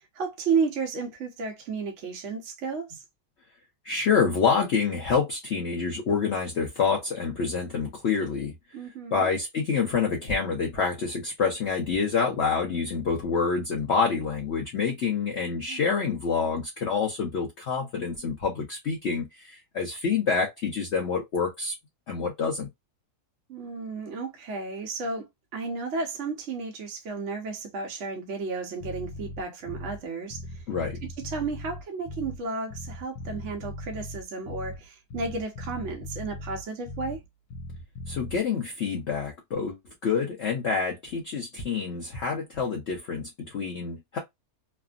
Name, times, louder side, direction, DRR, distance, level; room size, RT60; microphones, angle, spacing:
voice 1, 0.0-3.0 8.7-9.3 15.5-16.0 23.5-30.6 31.2-37.2, right 4 dB, 55° right, 0.9 m, -33 dB
voice 2, 3.8-8.5 9.1-21.7 22.1-22.7 30.7-31.0 38.1-39.8 40.0-44.2, left 5 dB, 55° left, 0.8 m, -27 dB
Bass guitar, 28.8-30.0 30.3-32.4 32.7-34.8 35.1-37.2 37.5-38.4, left 1 dB, 80° left, 1.2 m, -39 dB
3.3 x 2.0 x 2.3 m
omnidirectional pair, 1.7 m